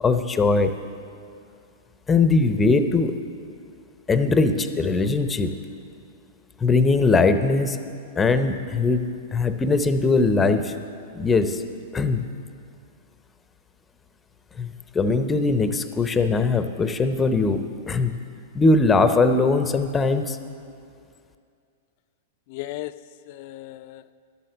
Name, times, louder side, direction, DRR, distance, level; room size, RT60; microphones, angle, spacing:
voice 1, 0.0-0.7 2.1-3.1 4.1-5.5 6.6-7.8 8.2-10.7 11.1-11.6 11.9-12.3 14.6-18.2 18.5-20.4, left 3 dB, 15° left, 9 dB, 0.6 m, -21 dB
voice 2, 22.5-24.1, left 15 dB, 55° left, 13 dB, 0.4 m, -37 dB
11.5 x 7.7 x 6.7 m, 2.4 s
hypercardioid pair, 125°, 0 cm